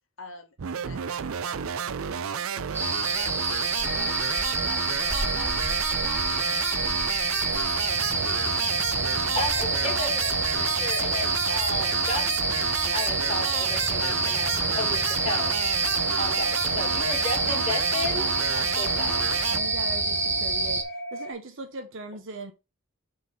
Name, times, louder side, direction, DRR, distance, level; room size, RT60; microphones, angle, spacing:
voice 1, 0.2-7.2, left 3 dB, 65° left, 1.8 m, -46 dB
sound 1, 0.6-19.6, right 8 dB, 85° right, 0.5 m, -31 dB
sound 2, 2.7-20.8, right 3 dB, 10° right, 0.9 m, -27 dB
sound 3, 3.8-21.3, right 1 dB, 45° left, 2.1 m, -37 dB
voice 2, 8.7-12.3 12.9-15.5 16.2-16.5 16.7-19.2, left 2 dB, 30° left, 2.7 m, -33 dB
voice 3, 19.5-20.8 21.1-22.5, right 2 dB, 65° right, 1.0 m, -38 dB
6.5 x 4.6 x 3.8 m
head